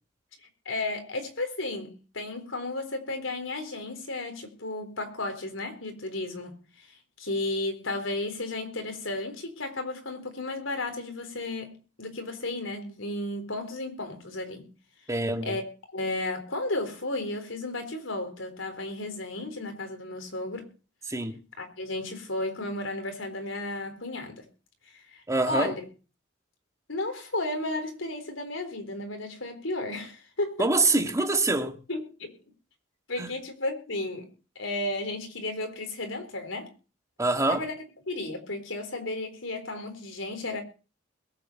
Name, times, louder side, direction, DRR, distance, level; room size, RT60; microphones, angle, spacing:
voice 1, 0.7-14.7 15.4-15.6 15.9-20.7 21.6-24.4 25.1-25.8 26.9-30.7 31.9-32.3 33.1-34.3 34.6-36.7 37.5-37.7 38.1-40.6, left 2 dB, 85° left, 4.0 m, -33 dB
voice 2, 15.1-15.5 21.1-21.4 25.3-25.7 30.6-31.7 33.2-33.3 37.2-37.6, right 2 dB, 15° right, 1.6 m, -25 dB
22.0 x 8.3 x 4.4 m
head